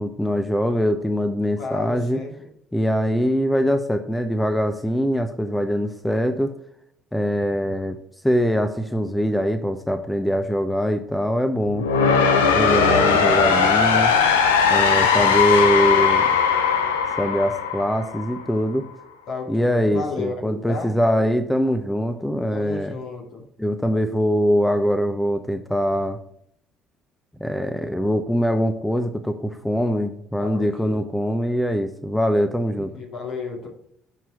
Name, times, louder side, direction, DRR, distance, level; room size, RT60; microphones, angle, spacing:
voice 1, 0.0-2.2 2.7-6.5 7.1-8.0 8.2-11.9 12.4-14.1 14.7-16.3 17.2-18.9 19.5-22.9 23.6-26.2 27.4-32.9, equal, 5° left, 8 dB, 0.9 m, -23 dB
voice 2, 1.6-2.5 15.1-15.8 19.3-20.9 22.5-23.4 30.4-31.0 32.7-33.7, left 3 dB, 60° left, 0 dB, 2.6 m, -33 dB
sound 1, 11.6-18.6, left 6 dB, 85° left, 0.8 m, -19 dB
11.0 x 4.6 x 4.7 m, 0.70 s
hypercardioid pair, 55°, 0 cm